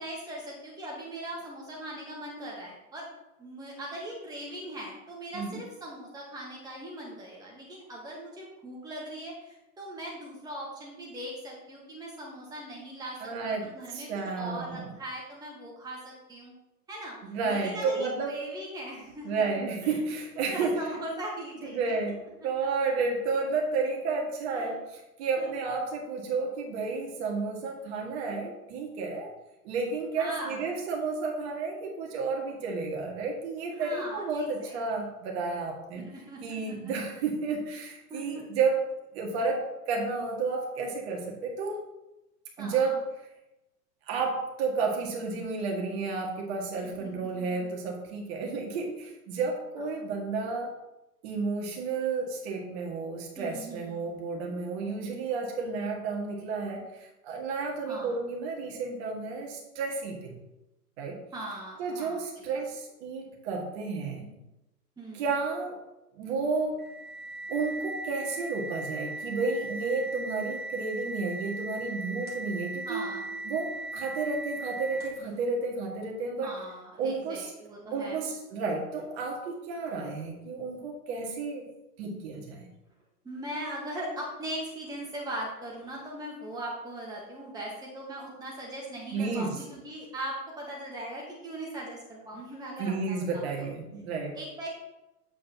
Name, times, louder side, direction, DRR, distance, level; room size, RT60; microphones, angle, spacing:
voice 1, 0.0-3.1 3.4-13.2 13.4-16.5 16.9-19.4 19.8-20.0 20.4-21.9 22.6-22.7 24.5-24.7 25.4-25.5 30.2-30.7 33.8-35.0 35.9-36.9 38.1-38.4 42.6-42.9 46.8-47.8 49.8-50.0 53.4-54.1 57.9-58.2 61.3-62.6 65.0-65.4 72.9-73.3 76.4-78.2 83.2-93.7 94.3-94.7, right 1 dB, 10° right, -3 dB, 1.5 m, -40 dB
voice 2, 13.2-14.9 17.2-18.3 19.2-20.8 21.6-22.2 22.4-29.3 29.6-36.1 36.4-38.8 39.1-41.8 42.6-43.0 44.1-50.7 51.2-56.9 57.2-60.4 61.0-61.2 61.8-64.3 65.1-65.8 66.1-66.8 67.5-73.1 73.4-76.5 77.0-77.5 77.9-81.7 82.0-82.7 89.1-89.6 92.8-94.4, right 4 dB, 40° right, 0 dB, 1.9 m, -31 dB
sound 1, 66.8-75.3, right 2 dB, 20° left, 2.0 m, -38 dB
8.3 x 7.6 x 2.9 m, 0.94 s
figure-of-eight pair, 105°, 47 cm